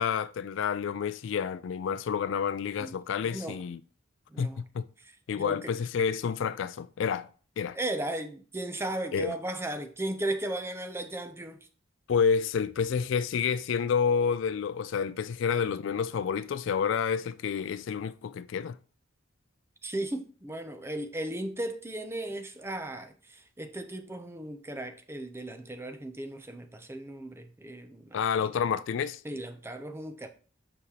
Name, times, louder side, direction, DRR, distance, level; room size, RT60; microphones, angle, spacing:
voice 1, 0.0-3.8 4.4-4.9 5.3-7.3 7.6-7.8 9.1-9.3 12.1-18.8 28.1-29.2, left 6 dB, 65° left, 0.3 m, -29 dB
voice 2, 3.2-3.6 4.3-4.6 5.3-5.7 7.7-11.7 19.8-28.5 29.2-30.3, right 1 dB, 10° right, 0.5 m, -36 dB
6.5 x 5.1 x 2.8 m
head